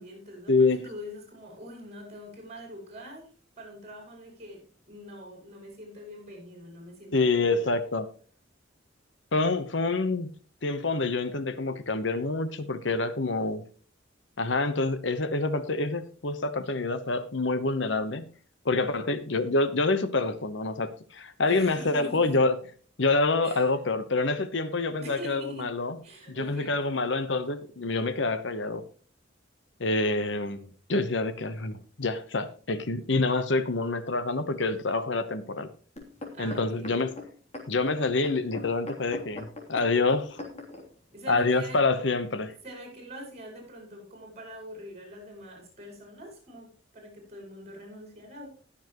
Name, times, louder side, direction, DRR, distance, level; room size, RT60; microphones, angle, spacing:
voice 1, 0.0-3.3 3.6-7.7 21.4-22.4 23.4-23.7 25.0-25.7 26.0-26.8 36.3-36.9 41.1-41.8 42.5-48.6, equal, 35° right, 1 dB, 6.1 m, -44 dB
voice 2, 7.1-8.1 9.3-10.3 10.6-13.6 14.4-18.3 18.6-22.6 23.0-26.0 26.3-28.8 29.8-35.7 36.4-37.1 37.7-40.4 41.3-42.5, left 3 dB, 70° left, 12 dB, 1.0 m, -27 dB
sound 1, 36.0-40.8 41.5-41.6, left 2 dB, 35° left, 3.1 m, -41 dB
20.0 x 7.3 x 3.0 m, 0.41 s
head